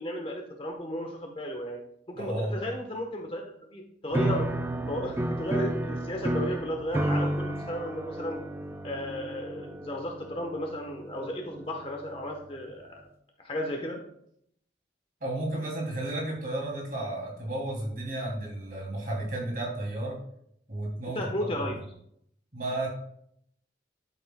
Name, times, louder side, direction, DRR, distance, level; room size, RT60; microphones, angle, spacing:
voice 1, 0.0-1.8 2.1-4.5 4.9-8.4 8.8-13.0 13.4-14.0 21.1-21.8, left 1 dB, 30° left, 2 dB, 1.1 m, -34 dB
voice 2, 2.1-2.6 15.2-20.2 20.7-21.7 22.5-22.9, right 1 dB, 50° right, -2 dB, 2.8 m, -33 dB
sound 1, 4.1-12.4, right 1 dB, 15° right, 0.4 m, -32 dB
12.0 x 7.7 x 2.3 m, 0.72 s
head